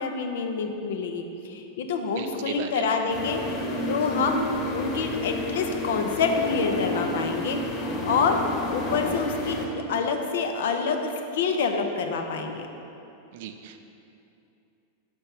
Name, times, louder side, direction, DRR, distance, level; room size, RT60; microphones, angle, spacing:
voice 1, 0.0-3.4 3.9-4.4 4.7-7.6 8.0-8.4 8.7-9.6 9.9-12.7, left 5 dB, 55° left, 5 dB, 0.6 m, -27 dB
voice 2, 2.1-2.9 13.3-13.8, right 9 dB, 50° right, 7 dB, 0.4 m, -36 dB
sound 1, 3.1-9.7, left 1 dB, 40° left, 1.2 m, -30 dB
6.0 x 5.3 x 5.5 m, 2.8 s
figure-of-eight pair, 90°, 0 cm